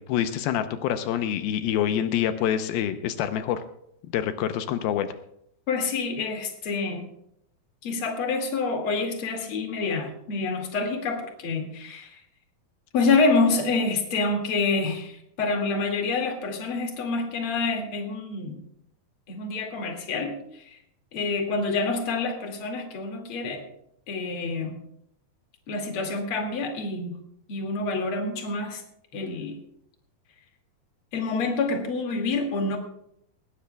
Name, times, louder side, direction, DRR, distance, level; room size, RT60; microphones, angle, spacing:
voice 1, 0.0-3.6 4.1-5.1, left 10 dB, 85° left, 9 dB, 2.7 m, -26 dB
voice 2, 5.7-7.1 7.8-12.2 12.9-18.6 19.3-20.8 21.1-23.6 24.1-24.7 25.7-27.1 27.5-28.8 29.1-29.6 31.1-32.8, left 3 dB, 40° left, 3 dB, 2.6 m, -27 dB
19.5 x 17.5 x 2.3 m, 0.73 s
omnidirectional pair, 4.3 m